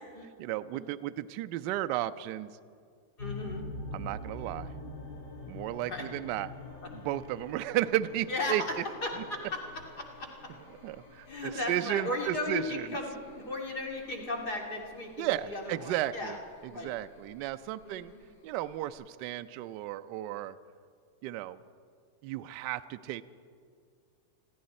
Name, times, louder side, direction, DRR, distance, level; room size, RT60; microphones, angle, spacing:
voice 1, 0.4-2.5 3.9-4.7 5.5-6.5 6.9-8.6 10.8-12.9 15.2-16.4 16.6-18.1 18.4-20.6 21.2-21.6 22.2-23.2, right 14 dB, 35° right, 10 dB, 0.4 m, -34 dB
sound 1, 3.2-18.9, left 2 dB, 75° left, 4.1 m, -46 dB
voice 2, 3.2-3.6 5.8-6.0 8.3-8.7 9.0-10.3 11.3-16.4 16.7-16.9 17.8-18.2, left 2 dB, 35° left, 1 dB, 2.4 m, -36 dB
21.5 x 14.5 x 4.3 m, 2.2 s
supercardioid pair, 175°, 0 cm